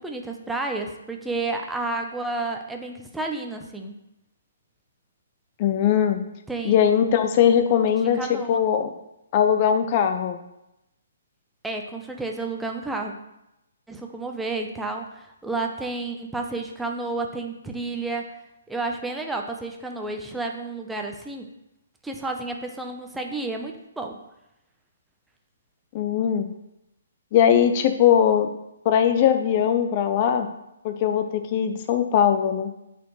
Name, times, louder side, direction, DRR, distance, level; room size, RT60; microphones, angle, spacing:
voice 1, 0.0-4.0 6.5-7.0 7.9-8.6 11.6-13.1 13.9-18.3 18.7-21.5 22.0-24.1, right 3 dB, 5° right, 2 dB, 0.6 m, -31 dB
voice 2, 5.6-6.2 6.6-8.9 9.3-10.4 25.9-26.5 27.3-28.5 28.8-30.5 30.8-32.7, left 9 dB, 35° left, 7 dB, 0.5 m, -20 dB
9.1 x 4.3 x 3.1 m, 0.87 s
hypercardioid pair, 140°, 0 cm